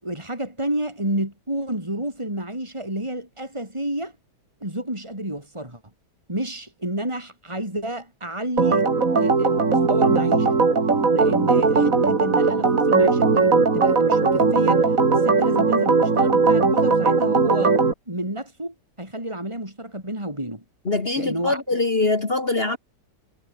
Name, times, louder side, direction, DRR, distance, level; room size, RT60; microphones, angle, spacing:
voice 1, 0.0-4.1 4.6-5.8 6.3-8.9 9.2-10.6 11.1-17.8 18.1-20.6 21.2-21.6, right 1 dB, 15° right, 7.2 m, -30 dB
Organ, 8.6-17.9, right 4 dB, 50° right, 3.1 m, -19 dB
voice 2, 20.9-22.8, left 3 dB, 35° left, 2.1 m, -23 dB
omnidirectional pair, 1.9 m